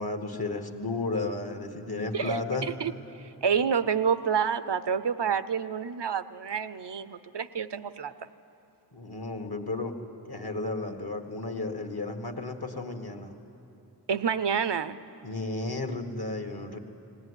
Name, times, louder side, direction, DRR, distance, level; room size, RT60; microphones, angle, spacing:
voice 1, 0.0-2.7 8.9-9.9 10.2-13.3 15.2-16.8, left 2 dB, 65° left, 4 dB, 1.7 m, -33 dB
voice 2, 2.1-2.9 3.4-8.1 14.1-15.0, right 7 dB, 80° right, 13 dB, 0.6 m, -28 dB
19.0 x 17.5 x 9.7 m, 2.9 s
wide cardioid pair, 45°, 41 cm